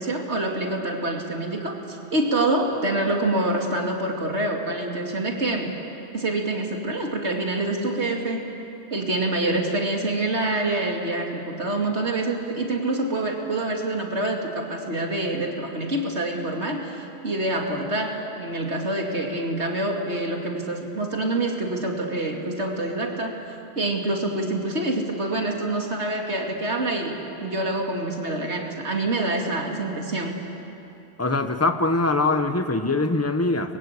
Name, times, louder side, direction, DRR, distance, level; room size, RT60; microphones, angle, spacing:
voice 1, 0.0-5.7 6.1-8.4 8.9-23.3 23.8-30.4, right 2 dB, 75° right, 1 dB, 2.9 m, -26 dB
voice 2, 31.2-33.8, left 2 dB, 15° left, 7 dB, 1.1 m, -23 dB
29.5 x 22.5 x 8.4 m, 2.9 s
omnidirectional pair, 1.1 m